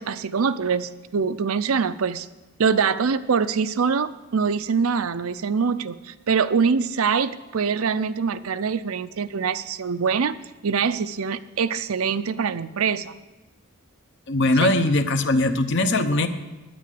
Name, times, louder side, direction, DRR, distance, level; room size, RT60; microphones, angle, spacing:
voice 1, 0.0-2.3 2.6-10.4 10.6-13.1 14.6-14.8, right 5 dB, 75° right, 13 dB, 0.5 m, -24 dB
voice 2, 14.3-16.3, left 2 dB, 55° left, 9 dB, 0.9 m, -20 dB
10.5 x 8.6 x 7.6 m, 1.1 s
head